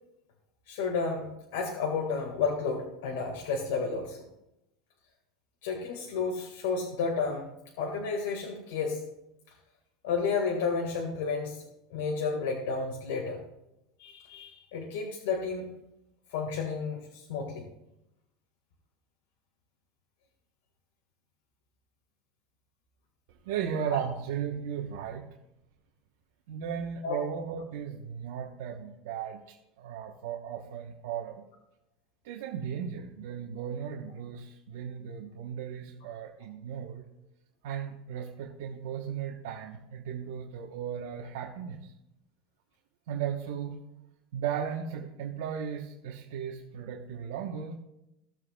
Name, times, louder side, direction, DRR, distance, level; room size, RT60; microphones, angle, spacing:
voice 1, 0.7-4.2 5.6-9.0 10.0-11.6 11.9-13.4 14.0-15.7 16.3-17.6 23.9-24.1 27.0-27.2, left 5 dB, 80° left, 0 dB, 1.6 m, -32 dB
voice 2, 23.4-25.2 26.5-31.4 32.2-37.1 37.6-41.8 43.1-43.8 44.3-47.7, right 8 dB, 75° right, 1 dB, 1.0 m, -36 dB
16.5 x 7.5 x 2.3 m, 0.87 s
supercardioid pair, 165°, 0 cm